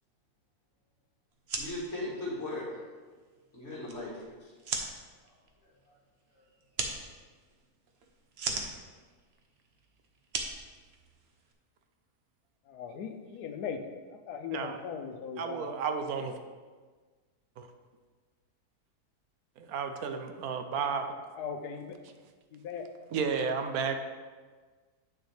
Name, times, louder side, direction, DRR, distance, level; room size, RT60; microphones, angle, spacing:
sound 1, 1.3-11.5, right 4 dB, 50° right, 0.9 m, -40 dB
voice 1, 1.6-2.8 3.5-4.5, left 1 dB, 50° left, -5 dB, 2.2 m, -37 dB
voice 2, 12.7-15.7 21.4-22.0 22.5-22.9, left 6 dB, 90° left, 6 dB, 1.2 m, -39 dB
voice 3, 14.5-14.8 15.4-16.3 17.6-17.7 19.6-21.0 23.1-24.0, right 5 dB, 75° right, 7 dB, 1.1 m, -32 dB
8.9 x 6.5 x 3.3 m, 1.4 s
omnidirectional pair, 1.7 m